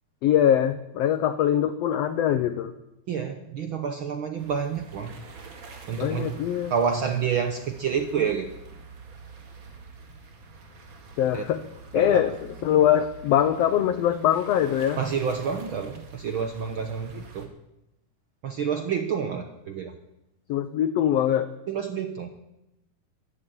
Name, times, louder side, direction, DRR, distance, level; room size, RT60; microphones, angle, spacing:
voice 1, 0.2-2.7 6.0-6.7 11.2-11.6 11.9-15.0 20.5-21.5, left 10 dB, 80° left, 11 dB, 1.4 m, -23 dB
voice 2, 3.1-5.2 5.9-6.4 6.7-8.5 11.3-11.4 11.9-12.2 15.0-17.5 18.4-19.9 21.7-22.3, right 7 dB, 80° right, 7 dB, 1.1 m, -28 dB
sound 1, 4.4-17.5, right 4 dB, 40° right, 2.4 m, -46 dB
14.0 x 11.5 x 8.9 m, 0.89 s
omnidirectional pair, 3.8 m